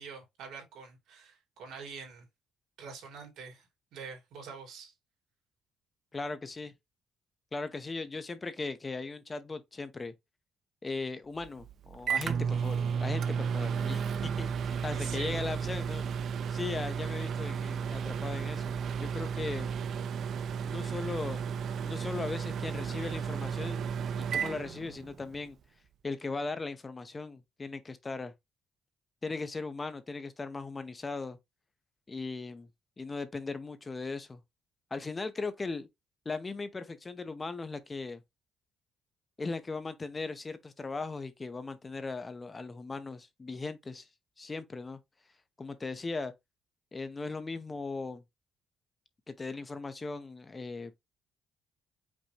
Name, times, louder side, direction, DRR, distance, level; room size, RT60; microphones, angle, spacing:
voice 1, 0.0-2.3 2.8-4.9 14.8-15.7, right 5 dB, 85° right, 2.5 m, -46 dB
voice 2, 6.1-6.7 7.5-10.1 10.8-16.0 16.5-19.7 20.6-21.4 21.8-23.9 24.2-25.6 26.0-28.3 29.2-31.4 32.1-32.7 33.0-34.4 34.9-35.9 36.2-38.2 39.4-44.1 44.4-45.0 45.6-46.3 46.9-48.2 49.3-50.9, left 3 dB, 30° left, 0.7 m, -38 dB
Microwave oven, 11.4-25.4, right 7 dB, 65° right, 0.5 m, -33 dB
5.3 x 3.2 x 2.9 m
cardioid pair, 90°, 0 cm